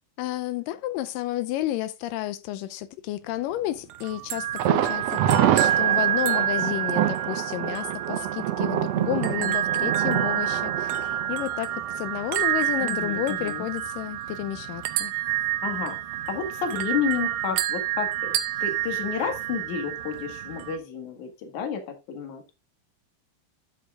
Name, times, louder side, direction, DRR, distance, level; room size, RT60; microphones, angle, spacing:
voice 1, 0.2-15.1, left 14 dB, 90° left, 2.3 m, -31 dB
sound 1, 3.9-20.8, right 12 dB, 90° right, 2.6 m, -28 dB
Thunder, 4.6-12.4 12.7-12.8 13.2-13.3, right 12 dB, 75° right, 1.5 m, -27 dB
voice 2, 12.8-13.7 15.6-16.0 16.3-18.3 18.6-22.6, left 7 dB, 65° left, 3.2 m, -31 dB
10.0 x 8.5 x 2.5 m
omnidirectional pair, 3.9 m